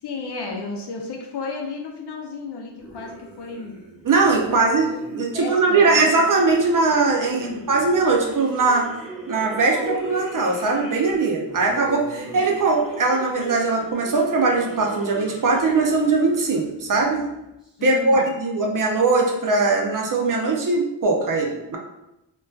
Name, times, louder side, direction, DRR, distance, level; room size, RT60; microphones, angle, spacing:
voice 1, 0.0-3.8 4.5-4.7 5.3-6.1 7.3-7.6 12.3-12.5 17.8-18.3, left 3 dB, 60° left, 0 dB, 0.5 m, -33 dB
sound 1, 2.8-17.7, right 2 dB, ahead, 0.8 m, -38 dB
voice 2, 4.0-8.9 9.3-17.3 17.8-21.8, right 3 dB, 45° right, 0 dB, 0.5 m, -20 dB
2.5 x 2.2 x 2.3 m, 0.89 s
wide cardioid pair, 80°, 47 cm